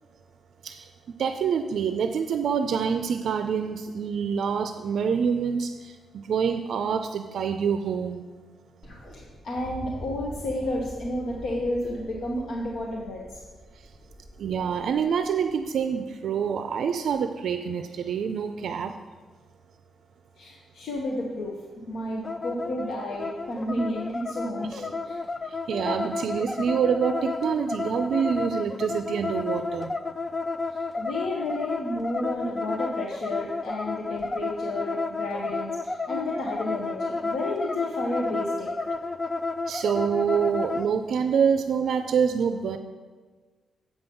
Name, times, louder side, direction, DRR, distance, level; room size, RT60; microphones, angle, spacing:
voice 1, 1.2-5.9 6.3-8.2 14.4-18.9 24.7-24.8 25.7-29.9 39.7-42.8, right 7 dB, 65° right, 8 dB, 0.4 m, -26 dB
sound 1, 8.8-16.0 17.1-17.2, equal, 45° left, 2.6 m, -44 dB
voice 2, 9.1-13.4 20.4-21.6 21.9-25.2 30.7-38.7, left 1 dB, 70° left, -2 dB, 1.2 m, -31 dB
sound 2, 22.2-40.9, left 3 dB, 15° left, 0.3 m, -31 dB
8.0 x 5.3 x 7.0 m, 1.4 s
wide cardioid pair, 160°, 0 cm